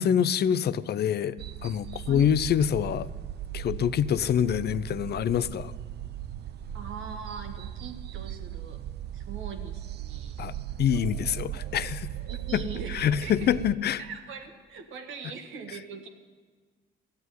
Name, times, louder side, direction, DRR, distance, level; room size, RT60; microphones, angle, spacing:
voice 1, 0.0-1.4 1.6-3.1 3.5-5.7 10.4-12.1 12.5-12.6 12.9-14.0, left 9 dB, 55° left, 0.5 m, -26 dB
sound 1, 1.4-13.7, right 12 dB, 55° right, 0.5 m, -38 dB
voice 2, 2.0-2.4 6.7-8.8 9.1-10.4 10.9-11.0 12.3-13.6 14.0-16.1, right 5 dB, 80° right, 1.7 m, -41 dB
14.0 x 8.3 x 9.4 m
cardioid pair, 90°, 20 cm